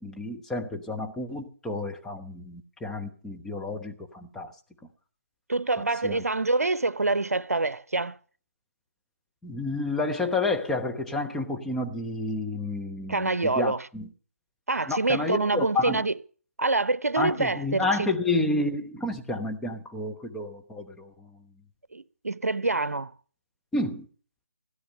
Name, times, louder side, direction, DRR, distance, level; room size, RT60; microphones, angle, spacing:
voice 1, 0.0-4.5 6.0-6.2 9.4-14.1 14.9-16.1 17.2-21.5 23.7-24.1, left 2 dB, 5° left, 0.9 m, -30 dB
voice 2, 5.5-8.2 13.1-13.8 14.7-16.1 16.6-18.1 21.9-23.1, right 3 dB, 80° right, 0.7 m, -26 dB
16.5 x 9.7 x 6.6 m
figure-of-eight pair, 150°, 8 cm